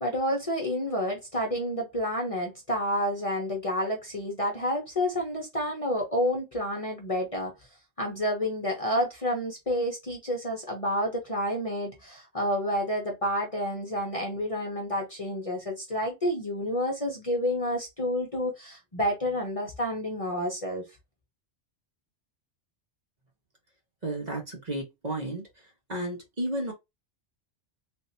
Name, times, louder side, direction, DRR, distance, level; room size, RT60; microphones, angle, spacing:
voice 1, 0.0-7.5 8.0-20.8, equal, 30° left, 0.9 m, -29 dB
voice 2, 24.0-25.4 25.9-26.7, right 1 dB, 35° right, 1.2 m, -32 dB
3.5 x 2.8 x 2.7 m
omnidirectional pair, 1.3 m